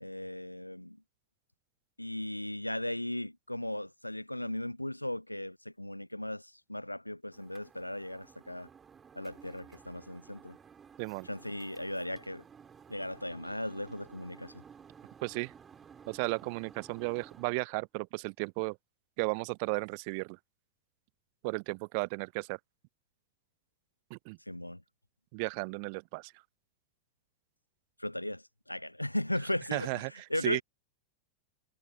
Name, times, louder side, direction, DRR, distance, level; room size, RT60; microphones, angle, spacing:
voice 1, 0.0-1.0 2.0-8.7 9.1-10.6 11.2-12.4 12.9-14.5 24.5-24.8 28.0-30.6, left 1 dB, 85° left, 0.5 m, -37 dB
sound 1, 7.3-17.5, right 7 dB, 20° right, 5.1 m, -55 dB
voice 2, 15.2-15.5 16.1-18.8 19.2-20.4 21.4-22.6 24.1-24.4 25.3-26.3 29.7-30.1 30.4-30.6, right 35 dB, 45° right, 0.3 m, -34 dB
figure-of-eight pair, 90°, 0 cm